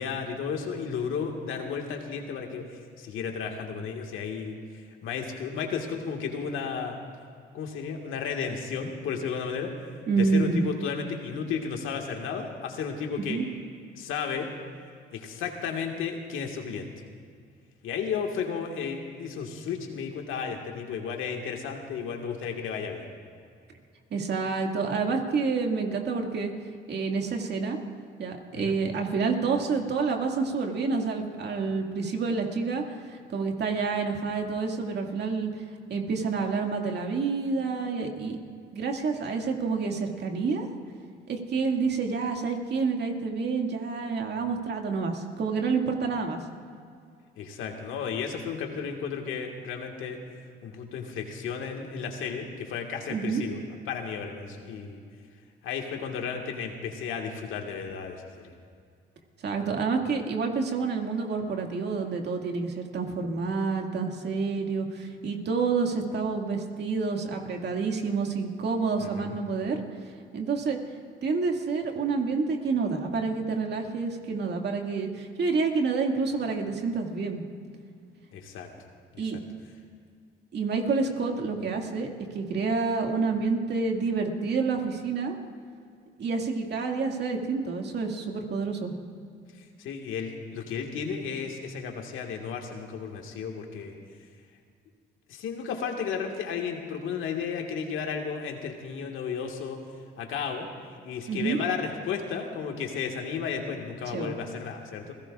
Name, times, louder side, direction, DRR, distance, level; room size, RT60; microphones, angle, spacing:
voice 1, 0.0-7.0 7.5-9.7 10.2-13.4 14.0-14.5 15.1-16.9 17.8-23.1 28.5-28.8 47.4-50.2 50.6-53.6 53.9-55.0 55.6-58.5 69.0-69.4 78.3-78.7 79.1-79.4 89.6-94.0 95.3-99.8 100.2-105.1, left 6 dB, 75° left, 2 dB, 1.8 m, -33 dB
voice 2, 10.1-10.6 13.3-13.5 24.1-26.5 26.9-27.8 28.2-35.6 35.9-38.4 38.7-40.7 41.3-46.4 53.1-53.4 59.4-69.8 70.3-70.8 71.2-77.4 79.2-79.4 80.5-82.1 82.3-85.4 86.2-88.9 101.3-101.6 104.1-104.4, right 4 dB, 55° right, 2 dB, 2.2 m, -28 dB
28.0 x 17.0 x 2.5 m, 2.3 s
supercardioid pair, 75°, 21 cm